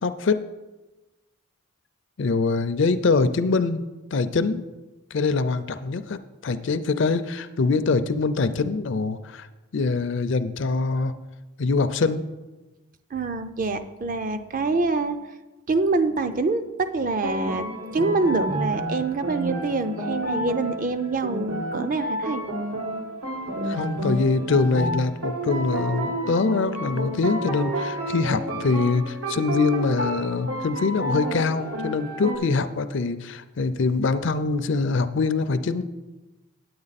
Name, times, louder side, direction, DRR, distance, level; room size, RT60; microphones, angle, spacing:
voice 1, 0.0-0.5 2.2-4.7 5.1-9.5 9.7-11.2 11.6-12.3 23.7-35.8, left 4 dB, 55° left, 12 dB, 0.5 m, -24 dB
voice 2, 13.1-15.2 15.7-22.4 23.5-23.7, right 3 dB, 40° right, 9 dB, 0.5 m, -26 dB
sound 1, 17.0-32.4, right 1 dB, 80° right, 1.5 m, -30 dB
9.3 x 8.6 x 4.1 m, 1.1 s
head